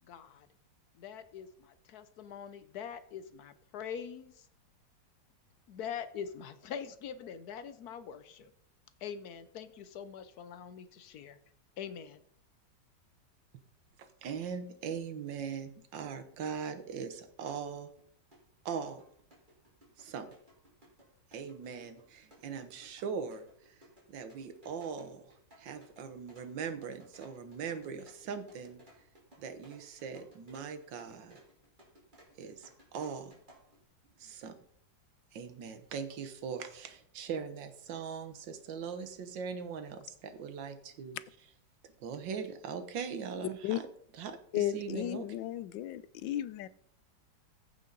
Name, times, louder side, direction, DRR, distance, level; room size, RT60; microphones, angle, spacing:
voice 1, 0.0-0.5 0.9-4.5 5.7-8.5 9.0-11.4 11.8-12.2, left 7 dB, 65° left, 1.1 m, -43 dB
voice 2, 14.0-17.9 18.6-19.0 20.0-20.3 21.3-28.8 29.4-31.4 32.4-33.3 34.2-34.6 35.3-41.2 42.0-43.9 44.1-45.3, right 6 dB, 85° right, 1.7 m, -40 dB
sound 1, 18.0-18.1 18.3-33.8, equal, 25° right, 2.7 m, -60 dB
voice 3, 44.5-46.7, left 12 dB, 90° left, 1.3 m, -34 dB
15.0 x 5.6 x 3.9 m
omnidirectional pair, 2.0 m